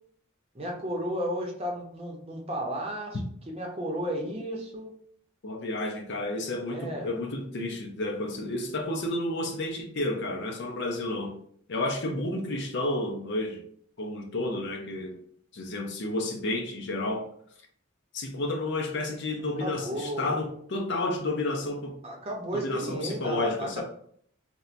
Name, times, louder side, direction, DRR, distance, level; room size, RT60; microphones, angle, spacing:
voice 1, 0.5-3.2 3.5-4.9 6.7-7.1 19.6-20.4 22.0-23.8, equal, 30° right, 0.7 m, -33 dB
voice 2, 5.4-11.3 11.7-13.6 14.0-15.2 15.5-17.3 18.1-22.0 22.5-23.8, left 2 dB, 60° left, 0.6 m, -31 dB
4.3 x 2.1 x 2.5 m
head